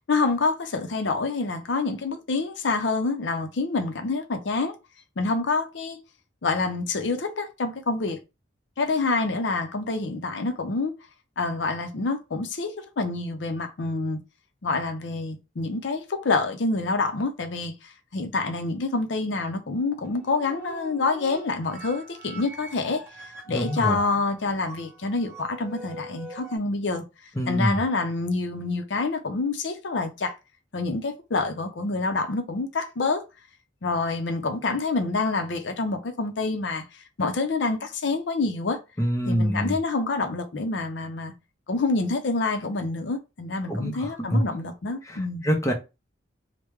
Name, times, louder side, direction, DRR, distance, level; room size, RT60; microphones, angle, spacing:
voice 1, 0.1-4.7 5.2-6.0 6.4-8.2 8.8-10.9 11.4-14.2 14.6-17.7 18.1-23.0 23.5-27.0 27.5-30.4 30.7-33.2 33.8-36.8 37.2-38.8 39.3-41.3 41.7-45.4, left 3 dB, 75° left, 0.6 m, -27 dB
sound 1, 20.0-26.6, right 3 dB, 15° right, 0.9 m, -43 dB
voice 2, 23.5-24.0 27.4-27.8 39.0-39.7 43.7-44.4 45.1-45.7, equal, 15° left, 0.7 m, -25 dB
3.5 x 2.2 x 3.1 m
head